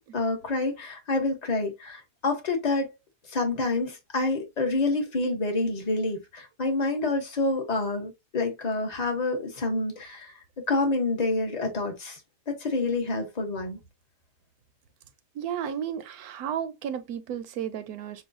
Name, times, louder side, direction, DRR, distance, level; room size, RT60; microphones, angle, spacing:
voice 1, 0.0-2.9 3.3-10.3 10.7-12.2 12.5-13.8, left 3 dB, 30° left, 1.0 m, -28 dB
voice 2, 15.3-18.3, right 9 dB, 70° right, 1.1 m, -33 dB
6.1 x 2.3 x 2.5 m
omnidirectional pair, 1.7 m